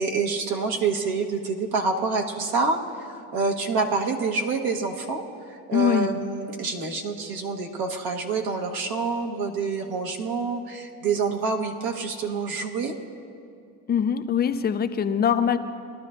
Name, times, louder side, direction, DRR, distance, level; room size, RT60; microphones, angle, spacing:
voice 1, 0.0-2.8 3.1-5.2 5.5-12.9, right 4 dB, 55° right, 2 dB, 1.2 m, -27 dB
voice 2, 5.7-6.1 13.9-15.6, left 8 dB, 25° left, 10 dB, 0.4 m, -22 dB
20.0 x 12.0 x 2.5 m, 2.4 s
supercardioid pair, 95°, 45 cm